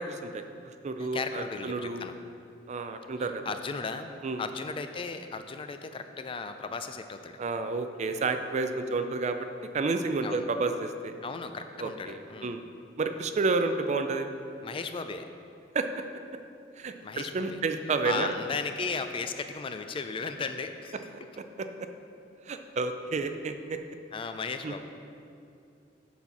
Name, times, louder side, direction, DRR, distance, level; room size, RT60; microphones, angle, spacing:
voice 1, 0.0-2.1 2.7-3.5 4.2-4.4 7.4-9.4 9.7-11.1 11.8-12.6 13.0-14.3 15.7-15.9 16.8-18.3 21.6-21.9 22.5-23.8 24.6-24.7, right 3 dB, 40° right, 8 dB, 0.4 m, -30 dB
voice 2, 1.0-2.1 3.2-4.1 4.4-7.4 10.2-10.5 11.2-12.6 14.6-15.3 17.0-17.6 18.0-21.3 24.1-24.9, left 4 dB, 30° left, 8 dB, 0.3 m, -36 dB
8.4 x 4.2 x 6.0 m, 2.6 s
head